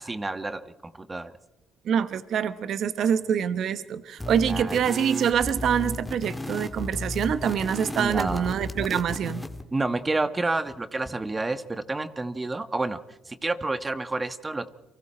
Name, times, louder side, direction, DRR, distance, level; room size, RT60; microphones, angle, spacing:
voice 1, 0.0-1.3 4.5-4.8 8.0-8.5 9.7-13.0 13.3-14.7, right 2 dB, 20° right, 12 dB, 1.3 m, -29 dB
voice 2, 1.8-9.4, right 8 dB, 65° right, 13 dB, 1.0 m, -25 dB
sound 1, 4.2-9.6, left 2 dB, 10° left, 2.0 m, -34 dB
29.5 x 24.0 x 4.4 m, 1.0 s
supercardioid pair, 80°, 0 cm